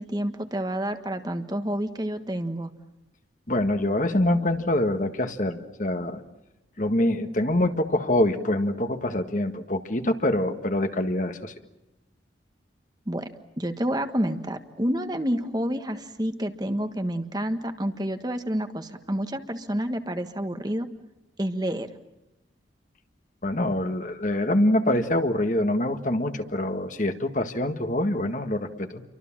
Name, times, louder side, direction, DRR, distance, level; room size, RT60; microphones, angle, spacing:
voice 1, 0.0-2.7 13.1-13.3 13.6-20.9 21.4-21.9, equal, 20° right, 8 dB, 1.5 m, -29 dB
voice 2, 3.5-6.2 6.8-11.5 23.4-29.0, left 1 dB, 45° left, 7 dB, 1.7 m, -25 dB
30.0 x 24.5 x 7.4 m, 0.95 s
head